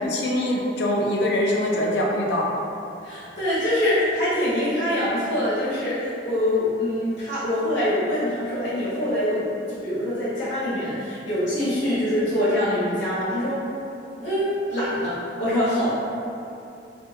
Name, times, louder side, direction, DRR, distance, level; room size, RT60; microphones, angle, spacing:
voice 1, 0.0-2.5, left 1 dB, 65° left, -2 dB, 0.4 m, -23 dB
voice 2, 3.0-9.4 9.7-13.6 14.2-15.9, left 1 dB, 85° left, -11 dB, 1.1 m, -24 dB
2.6 x 2.6 x 2.3 m, 2.7 s
head